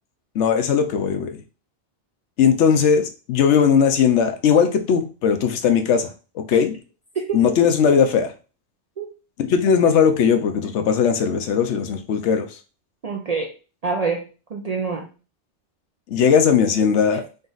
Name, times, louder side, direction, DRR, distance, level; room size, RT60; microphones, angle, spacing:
voice 1, 0.3-1.4 2.4-6.1 6.4-6.8 7.3-8.3 9.4-12.5 16.1-17.2, left 7 dB, 80° left, 6 dB, 0.9 m, -18 dB
voice 2, 13.0-13.5 13.8-15.1, right 5 dB, 50° right, 2 dB, 0.5 m, -26 dB
3.9 x 2.4 x 3.9 m, 0.34 s
omnidirectional pair, 1.2 m